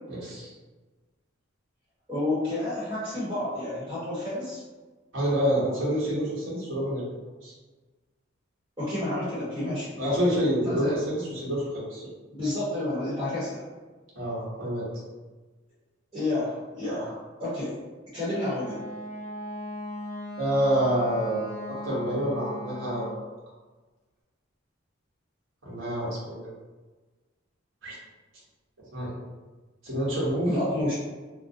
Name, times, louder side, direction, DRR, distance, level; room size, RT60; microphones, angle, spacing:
voice 1, 0.1-0.5 5.1-7.1 7.4-7.5 10.0-12.1 14.2-14.9 20.4-23.3 25.6-26.5 27.8-27.9 28.9-29.2 29.8-30.6, equal, 70° right, -7 dB, 1.0 m, -27 dB
voice 2, 2.1-4.6 8.8-10.2 10.6-11.0 12.3-13.6 16.1-17.7 18.1-18.8 30.5-30.9, left 1 dB, 20° right, -12 dB, 0.9 m, -30 dB
Wind instrument woodwind instrument, 18.3-23.3, left 1 dB, 35° left, 0.5 m, -38 dB
2.5 x 2.0 x 2.6 m, 1.3 s
head